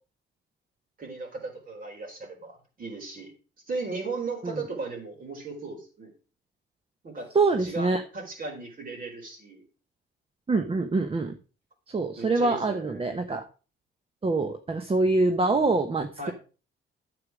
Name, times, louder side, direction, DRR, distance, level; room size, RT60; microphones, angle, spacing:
voice 1, 1.0-3.3 3.7-6.1 7.0-7.3 7.6-9.6 12.2-13.1 16.2-16.3, right 3 dB, 45° right, 2 dB, 4.5 m, -36 dB
voice 2, 7.3-8.0 10.5-11.4 11.9-13.5 14.2-16.3, right 3 dB, 30° right, 7 dB, 1.0 m, -25 dB
9.6 x 8.0 x 4.9 m, 0.35 s
cardioid pair, 90°, 20 cm